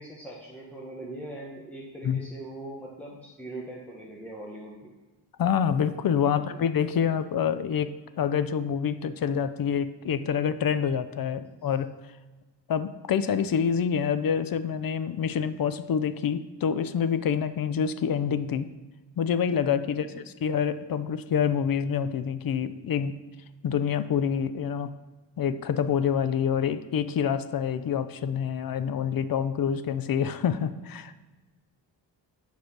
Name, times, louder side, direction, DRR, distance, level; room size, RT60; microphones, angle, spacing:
voice 1, 0.0-4.9 6.2-6.6 11.3-11.4 19.9-20.2, right 1 dB, 5° left, -4 dB, 1.3 m, -41 dB
voice 2, 5.4-11.9 12.7-18.7 19.2-23.2 23.6-24.9 25.4-31.1, left 7 dB, 55° left, 13 dB, 0.5 m, -27 dB
7.9 x 5.0 x 5.9 m, 1.2 s
cardioid pair, 95°, 42 cm